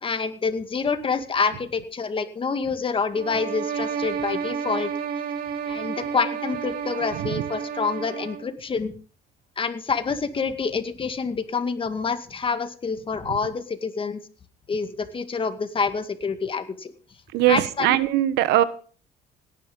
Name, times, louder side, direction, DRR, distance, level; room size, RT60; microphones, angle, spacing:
voice 1, 0.0-4.9 5.7-9.0 9.6-14.2 14.7-16.9 17.5-18.0, left 5 dB, 30° left, 9 dB, 2.2 m, -27 dB
sound 1, 3.1-8.5, right 7 dB, 60° right, 2.6 m, -31 dB
voice 2, 17.3-18.6, right 14 dB, 90° right, 15 dB, 1.2 m, -21 dB
17.5 x 10.5 x 5.5 m, 0.41 s
cardioid pair, 110°, 17 cm